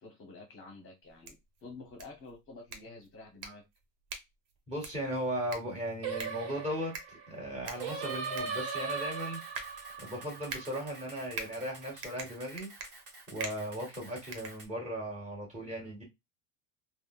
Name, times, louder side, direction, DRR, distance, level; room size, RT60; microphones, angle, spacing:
voice 1, 0.0-1.4 1.6-3.7, left 3 dB, 30° left, 0.9 m, -49 dB
sound 1, 1.0-15.2, right 4 dB, 85° right, 1.0 m, -47 dB
voice 2, 4.7-9.4 10.0-12.7 13.3-16.0, equal, 15° right, 1.6 m, -37 dB
Singing, 6.0-11.3, right 5 dB, 65° right, 1.0 m, -38 dB
Camera, 7.6-14.7, right 2 dB, 40° right, 1.2 m, -52 dB
3.6 x 2.2 x 2.2 m
cardioid pair, 140°, 45 cm